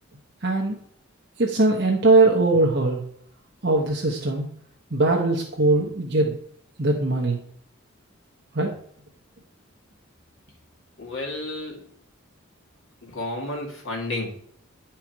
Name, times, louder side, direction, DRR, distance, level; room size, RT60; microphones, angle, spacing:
voice 1, 0.4-0.8 1.4-3.0 3.6-4.5 4.9-6.4 6.8-7.4 8.5-8.7, right 2 dB, 50° right, -1 dB, 1.1 m, -20 dB
voice 2, 11.0-11.8 13.0-14.3, left 2 dB, 65° left, -1 dB, 2.4 m, -31 dB
10.0 x 4.6 x 4.6 m, 0.64 s
head